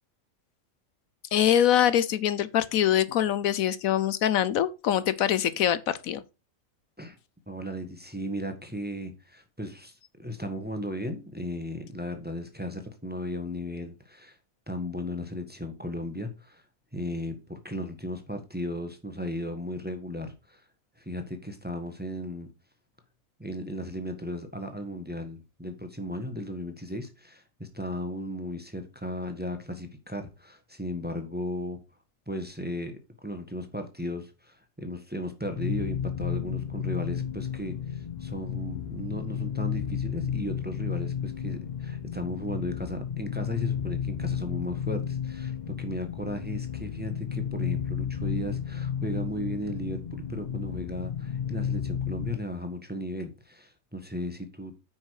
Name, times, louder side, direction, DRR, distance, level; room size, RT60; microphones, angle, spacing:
voice 1, 1.3-6.2, left 10 dB, 75° left, 1.1 m, -24 dB
voice 2, 7.5-14.4 14.7-16.6 16.9-20.6 21.0-22.5 23.4-31.8 32.3-54.8, equal, 5° right, 1.4 m, -36 dB
sound 1, 35.4-52.4, left 8 dB, 40° left, 0.7 m, -32 dB
9.2 x 5.7 x 4.8 m
omnidirectional pair, 1.5 m